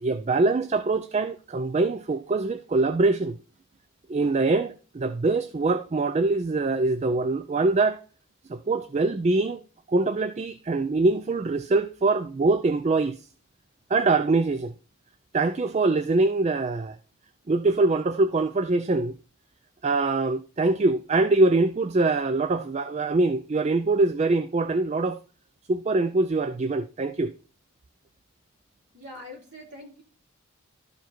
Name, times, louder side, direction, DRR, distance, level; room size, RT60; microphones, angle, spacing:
voice 1, 0.0-3.4 4.1-8.0 8.5-9.6 9.9-13.2 13.9-14.7 15.3-17.0 17.5-19.2 19.8-25.2 25.7-27.3, right 3 dB, 30° right, 0.3 m, -23 dB
voice 2, 28.9-30.0, left 1 dB, 50° right, 4.2 m, -43 dB
12.5 x 4.7 x 4.5 m
head